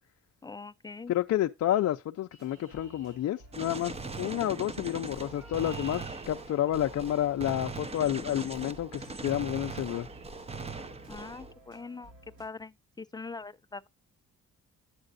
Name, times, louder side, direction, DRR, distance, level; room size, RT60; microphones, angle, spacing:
voice 1, 0.4-1.1 11.1-12.1 12.4-13.9, left 4 dB, 15° left, 0.4 m, -42 dB
voice 2, 1.1-10.1, left 12 dB, 60° left, 0.6 m, -30 dB
Chirp tweet, 2.3-3.9 5.0-8.1 9.2-9.5 10.1-10.3 10.6-10.8 11.1-11.4, right 1 dB, 45° right, 4.1 m, -55 dB
sound 1, 2.4-12.5, right 1 dB, 70° right, 6.2 m, -56 dB
Gunshot gunfire, 3.5-11.5, right 3 dB, 20° right, 0.8 m, -40 dB
9.7 x 7.7 x 2.6 m
cardioid pair, 90°, 30 cm